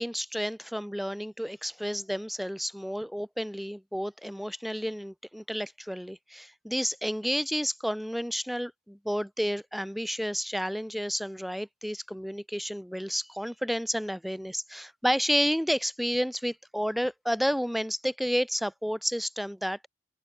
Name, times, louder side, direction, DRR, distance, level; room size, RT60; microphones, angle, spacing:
voice 1, 0.0-19.9, equal, ahead, 0.9 m, -31 dB
open air
head